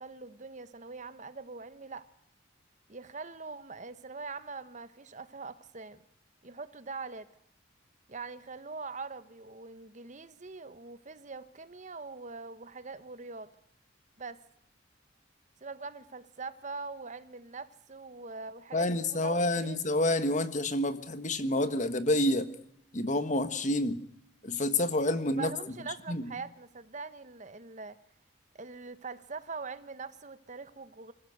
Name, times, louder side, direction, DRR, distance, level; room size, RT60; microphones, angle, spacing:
voice 1, 0.0-2.1 2.9-6.0 6.4-7.3 8.1-13.5 14.2-14.4 15.6-19.8 25.4-28.0 28.5-31.1, right 4 dB, 40° right, 13 dB, 1.1 m, -43 dB
voice 2, 18.7-22.5 22.9-24.0 24.4-25.5 26.1-26.3, left 1 dB, 40° left, 11 dB, 1.5 m, -28 dB
25.5 x 15.0 x 7.9 m, 0.75 s
head